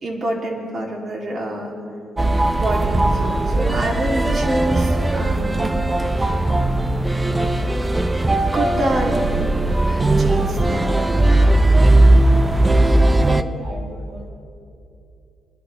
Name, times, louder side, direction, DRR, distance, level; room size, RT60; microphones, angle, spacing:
voice 1, 0.0-1.8 2.6-5.7 8.5-9.4 10.1-10.9, right 1 dB, 45° right, -1 dB, 2.7 m, -26 dB
sound 1, 2.2-13.4, right 1 dB, 15° right, 0.5 m, -18 dB
voice 2, 13.2-14.3, right 2 dB, 85° right, -1 dB, 1.6 m, -36 dB
24.0 x 12.0 x 3.2 m, 2.6 s
cardioid pair, 90°, 0 cm